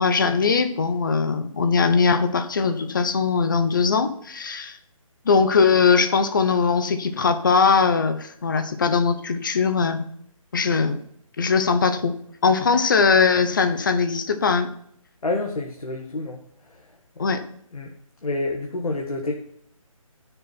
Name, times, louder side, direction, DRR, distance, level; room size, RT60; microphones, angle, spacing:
voice 1, 0.0-4.8 5.2-10.1 10.5-11.0 11.4-12.1 12.4-14.7 17.2-17.4, left 5 dB, 35° left, 9 dB, 1.0 m, -20 dB
voice 2, 15.2-16.4 17.2-17.3 17.7-17.9 18.2-19.3, left 2 dB, 85° left, 1 dB, 1.8 m, -28 dB
12.0 x 6.8 x 4.4 m, 0.68 s
hypercardioid pair, 170°, 18 cm